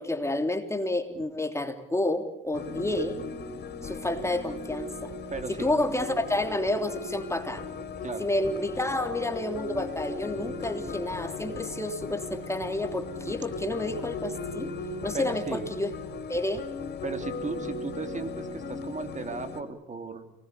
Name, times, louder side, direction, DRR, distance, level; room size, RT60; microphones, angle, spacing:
voice 1, 0.0-3.2 3.8-5.1 5.5-7.6 8.2-14.7 15.0-15.9 16.3-16.6, left 1 dB, 15° left, 7 dB, 3.2 m, -30 dB
sound 1, 2.5-19.6, left 3 dB, 55° left, 4.3 m, -37 dB
voice 2, 5.3-5.8 8.0-8.3 15.1-15.6 17.0-20.3, right 4 dB, 40° right, 8 dB, 3.3 m, -36 dB
29.5 x 20.0 x 8.4 m, 0.81 s
cardioid pair, 75°, 20 cm